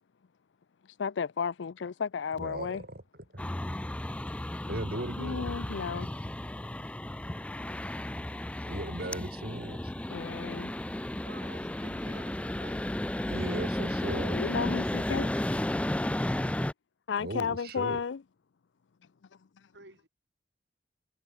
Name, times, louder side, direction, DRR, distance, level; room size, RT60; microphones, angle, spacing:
voice 1, 1.0-2.8 5.2-6.1 10.1-10.7 14.3-15.3 17.1-18.2, left 6 dB, 85° left, 0.5 m, -33 dB
voice 2, 2.4-3.0 3.3-3.4 4.7-5.5 8.7-9.8 13.3-14.4 17.2-18.0, right 1 dB, 55° right, 3.7 m, -37 dB
sound 1, 3.4-16.7, left 1 dB, 5° left, 0.3 m, -33 dB
voice 3, 11.2-12.8 19.7-20.1, right 2 dB, 70° right, 8.0 m, -51 dB
head